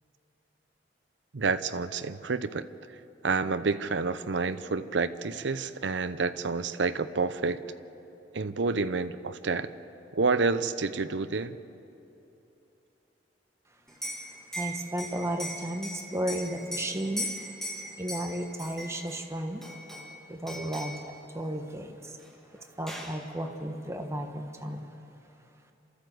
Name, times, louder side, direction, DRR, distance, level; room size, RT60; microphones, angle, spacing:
voice 1, 1.3-2.7 3.2-7.6 8.3-9.7 10.1-11.6, right 4 dB, 75° right, 12 dB, 0.7 m, -29 dB
Liquid, 13.9-19.2 19.6-20.2 20.5-21.0 22.2-22.3 22.6-23.2, equal, 5° left, 2.4 m, -38 dB
voice 2, 14.2-17.3 18.0-19.6 20.3-22.3 22.8-24.9, right 1 dB, 15° right, 4 dB, 1.3 m, -34 dB
28.5 x 13.5 x 7.8 m, 2.9 s
head